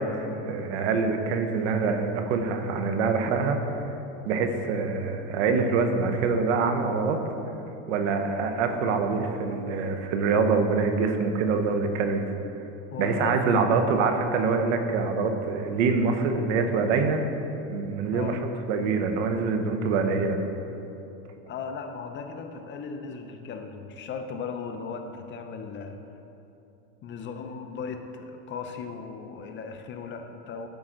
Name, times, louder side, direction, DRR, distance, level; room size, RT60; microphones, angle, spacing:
voice 1, 0.0-3.6 4.2-7.2 7.9-12.3 13.0-17.2 17.7-18.4 18.7-20.4, right 4 dB, 80° right, 6 dB, 1.0 m, -25 dB
voice 2, 12.9-14.0 18.1-18.4 21.4-26.0 27.0-30.7, left 5 dB, 30° left, 6 dB, 0.7 m, -36 dB
12.0 x 5.6 x 3.9 m, 2.9 s
supercardioid pair, 125°, 35 cm